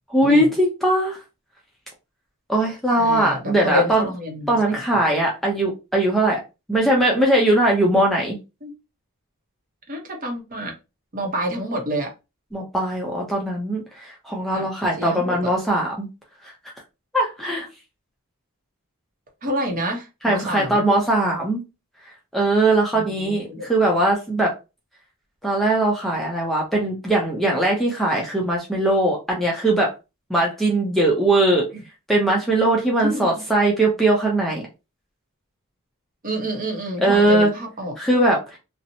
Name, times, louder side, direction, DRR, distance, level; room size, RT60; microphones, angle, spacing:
voice 1, 0.1-1.2 2.5-4.0 4.5-6.4 6.7-8.4 12.5-16.1 17.1-17.7 20.2-21.6 22.3-24.5 25.4-29.9 30.3-31.6 32.1-34.6 37.0-37.5 38.0-38.6, right 1 dB, ahead, 0.5 m, -20 dB
voice 2, 3.0-4.6 4.9-5.0 8.6-8.7 9.9-10.7 11.1-12.1 14.5-14.7 15.0-15.5 19.4-20.8 22.9-23.7 33.0-33.4 36.2-38.0, equal, 40° right, 0.7 m, -28 dB
2.8 x 2.0 x 2.6 m
head